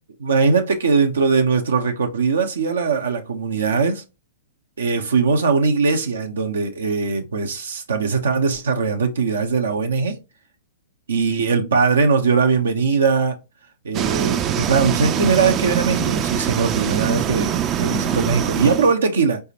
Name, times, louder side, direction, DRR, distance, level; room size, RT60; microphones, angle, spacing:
voice 1, 0.2-4.0 4.8-10.2 11.1-13.4 13.8-19.4, right 5 dB, 80° right, 0.7 m, -20 dB
sound 1, 13.9-18.9, right 9 dB, 30° right, 0.4 m, -23 dB
4.1 x 3.5 x 2.8 m
hypercardioid pair, 115°, 0 cm